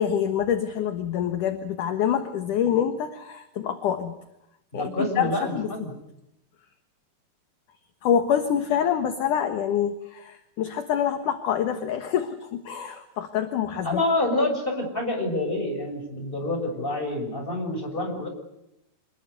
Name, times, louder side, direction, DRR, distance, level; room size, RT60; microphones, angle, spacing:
voice 1, 0.0-4.2 4.7-5.7 8.0-14.0, left 9 dB, 60° left, 7 dB, 2.5 m, -26 dB
voice 2, 4.7-5.9 13.8-18.3, left 1 dB, 10° left, 3 dB, 6.4 m, -27 dB
27.0 x 21.5 x 6.7 m, 0.86 s
omnidirectional pair, 4.8 m